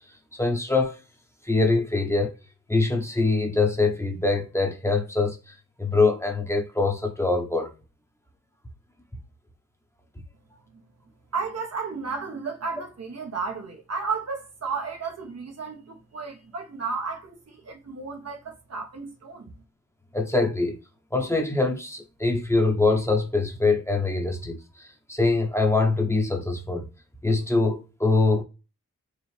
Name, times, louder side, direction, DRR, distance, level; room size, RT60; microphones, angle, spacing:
voice 1, 0.3-1.0 1.4-2.4 2.7-5.4 5.8-7.7 20.1-20.8 21.1-26.9 27.2-28.4, left 3 dB, 10° left, 1.0 m, -23 dB
voice 2, 11.3-19.5, right 4 dB, 55° right, 1.1 m, -33 dB
4.7 x 2.4 x 3.3 m
cardioid pair, 50°, 31 cm